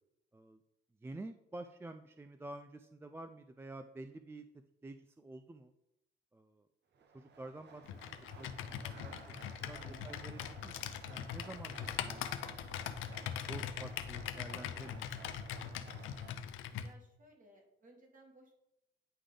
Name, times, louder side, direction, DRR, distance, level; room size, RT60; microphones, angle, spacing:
voice 1, 1.0-4.4 4.8-5.7 6.3-6.7 7.1-9.1 9.5-12.6 13.5-15.1, right 2 dB, 10° right, 8 dB, 0.3 m, -50 dB
sound 1, 6.9-16.3, right 4 dB, 60° right, 0.9 m, -55 dB
Computer keyboard, 7.9-16.9, left 9 dB, 85° left, 0.6 m, -42 dB
voice 2, 9.8-10.2 14.7-15.0 16.8-18.5, right 1 dB, 40° right, 0 dB, 2.1 m, -61 dB
9.8 x 3.3 x 3.8 m, 0.86 s
cardioid pair, 90°, 20 cm